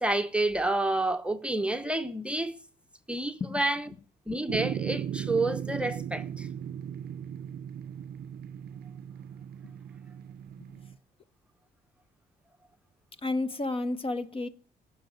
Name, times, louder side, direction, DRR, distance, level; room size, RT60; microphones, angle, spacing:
voice 1, 0.0-2.5 3.1-3.9 4.3-6.5, right 2 dB, 5° right, 0.8 m, -29 dB
sound 1, 4.5-10.9, right 9 dB, 65° right, 0.6 m, -37 dB
voice 2, 13.2-14.5, left 2 dB, 35° left, 1.1 m, -31 dB
14.5 x 6.2 x 9.3 m
cardioid pair, 95°, 17 cm